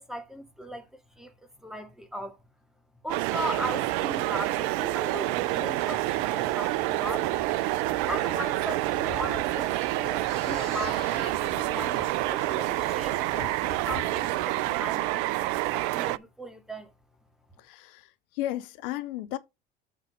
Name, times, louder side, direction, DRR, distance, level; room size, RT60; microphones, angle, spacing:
voice 1, 0.0-1.3 1.6-2.4 3.0-7.4 8.0-13.6 13.8-16.9, equal, ahead, 2.2 m, -38 dB
sound 1, 3.1-16.2, right 17 dB, 60° right, 0.6 m, -28 dB
sound 2, 3.3-14.8, left 6 dB, 90° left, 1.6 m, -46 dB
voice 2, 17.6-19.4, left 14 dB, 65° left, 0.8 m, -34 dB
7.8 x 4.0 x 5.2 m
hypercardioid pair, 75°, 29 cm